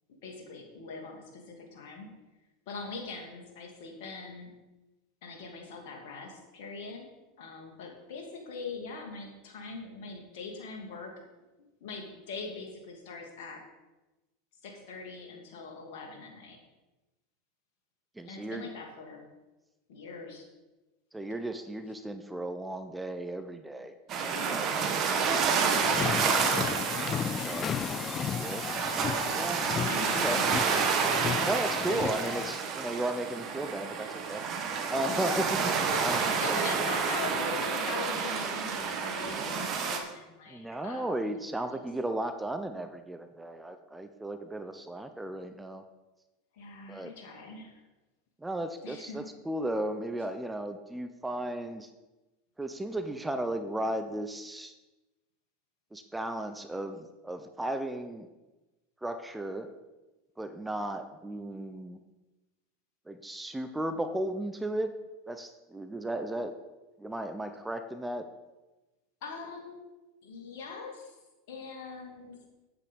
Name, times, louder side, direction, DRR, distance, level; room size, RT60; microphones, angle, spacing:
voice 1, 0.2-2.1 2.7-4.5 5.2-7.1 7.4-11.1 11.8-13.6 14.6-16.6 18.2-19.2 19.9-20.5 24.2-24.9 27.4-28.6 29.9-30.5 31.9-32.1 35.1-35.4 35.7-41.8 46.5-47.8 48.8-49.3 69.2-69.8 70.2-71.2 71.5-72.4, left 4 dB, 65° left, 1 dB, 2.6 m, -42 dB
voice 2, 18.2-18.7 21.1-26.5 27.3-27.7 28.2-28.6 29.3-30.5 31.4-34.4 34.9-36.2 36.5-36.9 40.5-45.8 46.9-47.2 48.4-51.9 52.6-54.7 55.9-58.3 59.0-59.7 60.4-62.0 63.1-64.9 65.3-66.5 67.0-68.3, right 1 dB, 10° right, 8 dB, 0.8 m, -35 dB
sound 1, 24.1-40.0, right 5 dB, 45° right, 1.5 m, -29 dB
sound 2, 25.9-32.6, left 8 dB, 35° left, 0.3 m, -34 dB
8.6 x 8.1 x 5.4 m, 1.1 s
hypercardioid pair, 90°, 0 cm